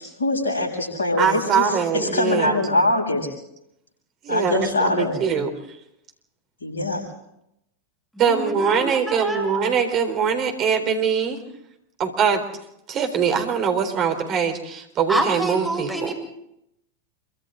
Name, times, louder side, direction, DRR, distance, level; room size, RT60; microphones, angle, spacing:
voice 1, 0.2-3.3 4.3-5.1 6.6-7.0, left 2 dB, 75° left, 0 dB, 7.9 m, -23 dB
voice 2, 1.2-2.6 4.2-5.5 8.2-11.4 12.0-12.5 12.9-16.1, right 6 dB, 35° right, 6 dB, 3.9 m, -22 dB
voice 3, 8.1-9.5 15.1-16.1, right 2 dB, 5° right, 0 dB, 7.2 m, -27 dB
27.5 x 24.5 x 4.0 m, 0.80 s
figure-of-eight pair, 90°, 0 cm